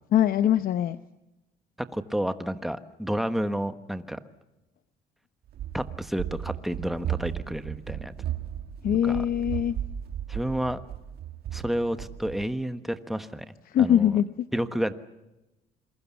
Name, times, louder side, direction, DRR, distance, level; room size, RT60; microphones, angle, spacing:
voice 1, 0.1-1.0 8.8-9.7 13.7-14.5, left 10 dB, 60° left, 11 dB, 0.8 m, -22 dB
voice 2, 1.8-4.2 5.7-8.1 9.0-9.2 10.3-10.8 11.5-13.4 13.8-14.2 14.5-14.9, equal, ahead, 10 dB, 1.2 m, -30 dB
Run, 5.5-12.5, right 10 dB, 65° right, 1.8 m, -35 dB
27.0 x 21.5 x 7.2 m, 0.98 s
cardioid pair, 110°, 17 cm